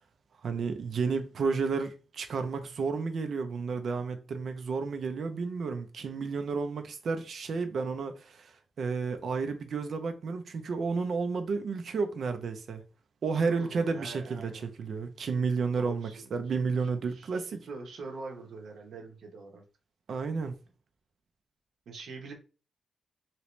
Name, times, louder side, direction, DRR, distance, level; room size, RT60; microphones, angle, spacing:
voice 1, 0.4-12.8 13.2-14.5 14.8-17.6 20.1-20.6, right 4 dB, 55° right, 0.5 m, -31 dB
voice 2, 13.4-14.7 15.8-19.6 21.9-22.3, right 3 dB, 75° right, 0.9 m, -44 dB
3.0 x 2.8 x 3.1 m
wide cardioid pair, 135°, 0 cm